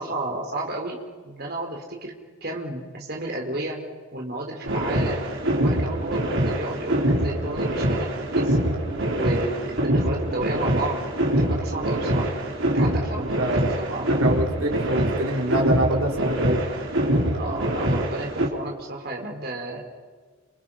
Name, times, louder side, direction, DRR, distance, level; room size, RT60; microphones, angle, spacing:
voice 1, 0.0-2.1 2.4-3.8 4.1-5.2 5.6-8.6 9.1-11.0 11.4-12.3 12.7-14.2 17.3-19.9, right 2 dB, 45° right, 0 dB, 4.3 m, -32 dB
sound 1, 4.6-18.5, right 1 dB, 65° right, 4.6 m, -24 dB
voice 2, 14.0-16.6, right 1 dB, 90° right, 1 dB, 4.4 m, -25 dB
29.5 x 27.0 x 5.8 m, 1.5 s
head